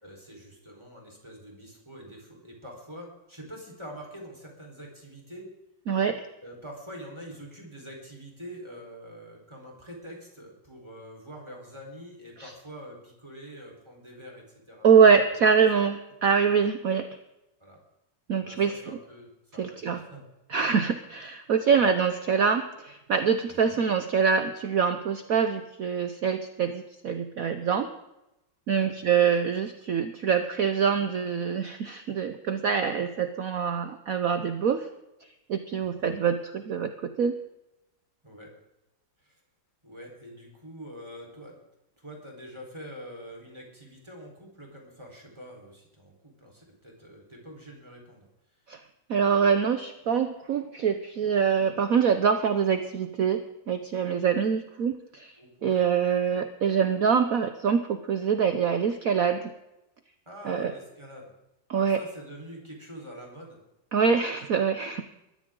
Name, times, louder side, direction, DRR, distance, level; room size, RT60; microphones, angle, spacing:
voice 1, 0.0-5.5 6.4-15.1 15.3-15.6 17.6-17.8 18.3-20.2 21.7-21.9 23.5-23.8 28.7-28.9 35.8-36.2 38.2-38.5 39.2-39.4 39.8-41.6 42.0-48.3 55.4-55.8 60.3-61.3 61.7-63.6, equal, 15° right, -1 dB, 4.3 m, -45 dB
voice 2, 5.9-6.2 14.8-17.1 18.3-18.7 19.6-20.0 20.5-27.9 28.7-34.9 35.5-37.3 48.7-48.8 49.1-53.4 53.7-55.3 55.6-59.5 60.4-60.7 61.7-62.0 63.9-65.0, right 6 dB, 55° right, 8 dB, 1.1 m, -24 dB
21.0 x 14.5 x 3.8 m, 0.93 s
omnidirectional pair, 2.1 m